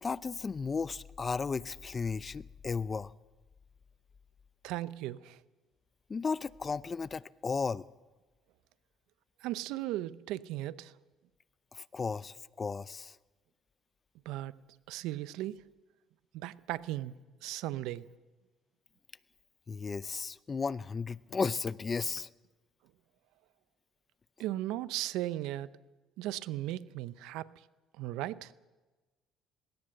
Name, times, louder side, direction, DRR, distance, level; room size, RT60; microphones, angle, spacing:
voice 1, 0.0-3.1 6.1-7.8 11.7-13.2 19.7-22.3, left 5 dB, 30° left, 0.6 m, -34 dB
voice 2, 4.6-5.4 9.4-10.9 14.3-14.5 14.9-15.6 16.3-17.1 17.4-18.1 24.4-25.7 26.2-27.5 28.0-28.5, right 15 dB, 80° right, 0.7 m, -36 dB
20.0 x 17.5 x 7.9 m
supercardioid pair, 80°, 0 cm